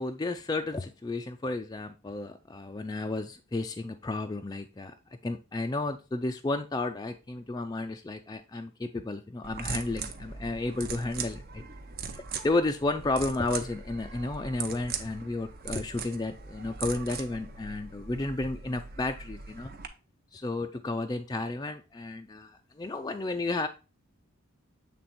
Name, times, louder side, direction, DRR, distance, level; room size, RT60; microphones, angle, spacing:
voice 1, 0.0-4.9 5.2-11.6 12.1-19.7 20.3-23.7, left 2 dB, 20° left, 5 dB, 0.4 m, -32 dB
sound 1, 9.4-19.9, right 5 dB, 45° right, 0.7 m, -40 dB
7.7 x 3.4 x 4.2 m, 0.30 s
head